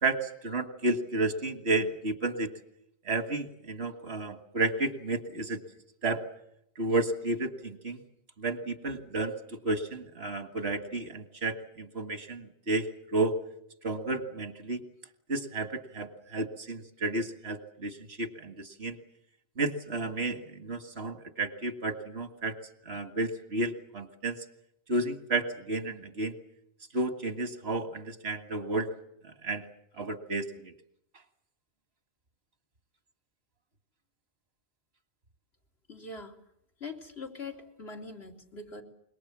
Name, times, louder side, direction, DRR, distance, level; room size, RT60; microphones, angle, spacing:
voice 1, 0.0-2.5 3.1-5.6 6.0-6.2 6.8-8.0 8.4-13.4 13.8-14.8 15.3-19.0 19.6-22.6 22.9-24.4 24.9-26.3 26.9-28.9 29.2-29.6 30.0-30.7, right 2 dB, 80° right, 8 dB, 2.0 m, -32 dB
voice 2, 35.9-36.4 36.8-38.8, left 3 dB, 90° left, 1 dB, 3.0 m, -42 dB
25.5 x 22.5 x 7.4 m, 0.78 s
omnidirectional pair, 1.1 m